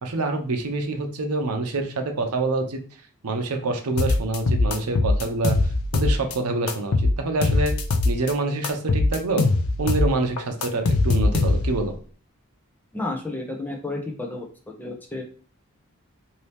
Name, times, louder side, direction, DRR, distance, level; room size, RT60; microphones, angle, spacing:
voice 1, 0.0-2.8 3.2-5.6 5.9-7.7 8.0-9.5 9.8-11.9, right 2 dB, 85° right, 5 dB, 0.6 m, -26 dB
sound 1, 4.0-6.4 6.7-8.3 8.6-11.9, left 2 dB, 75° left, 0.5 m, -21 dB
voice 2, 12.9-14.5 14.8-15.2, left 2 dB, 10° left, 1 dB, 0.5 m, -31 dB
2.8 x 2.7 x 3.4 m, 0.41 s
head